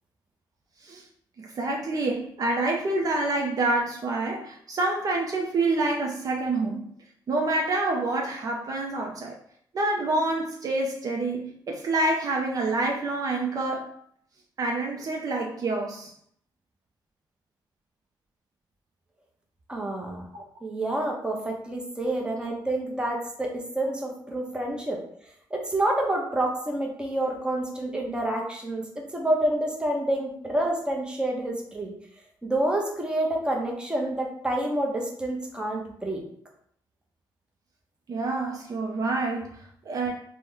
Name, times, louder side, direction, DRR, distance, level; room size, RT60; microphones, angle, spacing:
voice 1, 1.4-6.8 7.3-9.4 9.7-13.9 14.6-16.1 20.3-20.4 38.1-40.1, right 2 dB, 50° right, 0 dB, 0.5 m, -27 dB
voice 2, 19.7-20.2 20.6-25.0 25.5-31.9 32.4-36.2, right 1 dB, 10° right, 0 dB, 0.7 m, -28 dB
3.0 x 2.1 x 3.6 m, 0.66 s
cardioid pair, 95°, 8 cm